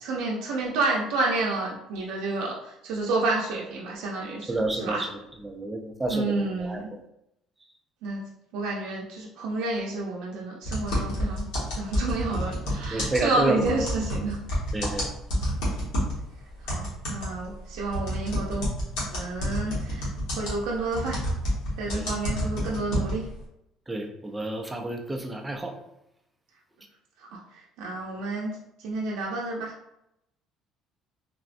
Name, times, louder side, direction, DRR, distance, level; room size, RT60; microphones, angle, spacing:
voice 1, 0.0-5.0 6.1-6.9 8.0-8.2 8.5-11.5 11.8-14.4 16.6-18.7 19.1-20.1 20.4-21.2 21.8-23.2 27.3-27.4 27.8-28.5 28.8-29.7, right 2 dB, 80° right, -3 dB, 0.5 m, -29 dB
voice 2, 4.5-5.1 5.4-7.0 12.9-13.6 14.7-15.1 21.9-22.1 23.9-25.7, right 2 dB, 10° right, 3 dB, 0.3 m, -30 dB
sound 1, 10.6-16.2 16.7-23.4, equal, 90° left, 1.2 m, -29 dB
3.4 x 2.1 x 2.4 m, 0.82 s
cardioid pair, 155°, 0 cm